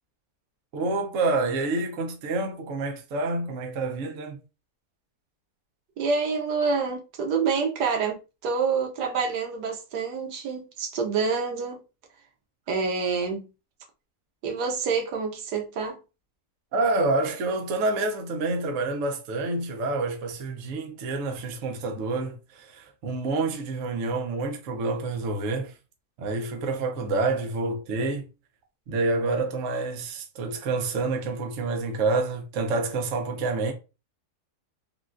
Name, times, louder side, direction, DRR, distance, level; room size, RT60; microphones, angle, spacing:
voice 1, 0.7-4.4 16.7-25.7 26.2-28.3 28.9-33.7, right 3 dB, 60° right, 0.9 m, -28 dB
voice 2, 6.0-11.8 12.7-13.5 14.4-16.0, right 5 dB, 85° right, 1.3 m, -27 dB
3.8 x 2.2 x 2.3 m
omnidirectional pair, 1.7 m